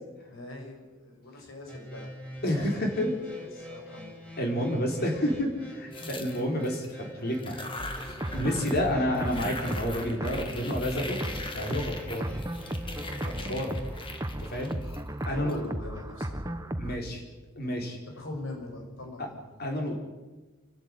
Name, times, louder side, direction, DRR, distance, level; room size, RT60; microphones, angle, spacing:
voice 1, 0.3-2.1 2.6-4.2 6.0-6.1 15.2-16.6 17.0-17.2 18.1-19.4, left 2 dB, 75° left, 1 dB, 7.2 m, -42 dB
sound 1, 1.7-14.2, equal, 5° left, 6.1 m, -45 dB
voice 2, 2.4-3.1 4.4-7.7 7.9-11.2 11.5-12.3 13.2-13.7 14.5-14.7 15.3-15.6 16.8-17.2 17.6-18.0 19.2-19.3 19.6-20.0, equal, 50° left, 2 dB, 5.2 m, -30 dB
sound 2, 5.9-6.9 7.3-8.9 9.1-15.5, left 2 dB, 25° left, 2.4 m, -41 dB
sound 3, 7.8-17.0, right 1 dB, 15° right, 1.1 m, -35 dB
28.5 x 12.5 x 9.5 m, 1.2 s
head